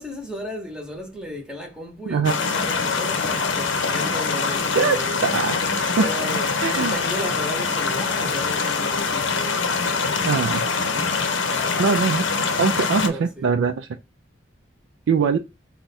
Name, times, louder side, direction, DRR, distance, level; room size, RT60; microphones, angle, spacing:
voice 1, 0.0-5.2 6.0-9.7 10.2-11.2 13.0-13.5, equal, 5° right, 0.8 m, -35 dB
sound 1, 2.2-13.1, left 4 dB, 85° left, 0.7 m, -24 dB
voice 2, 4.7-6.1 6.6-6.9 10.2-10.7 11.8-12.3 12.6-13.9 15.1-15.4, right 5 dB, 90° right, 0.4 m, -22 dB
4.6 x 2.2 x 4.0 m
head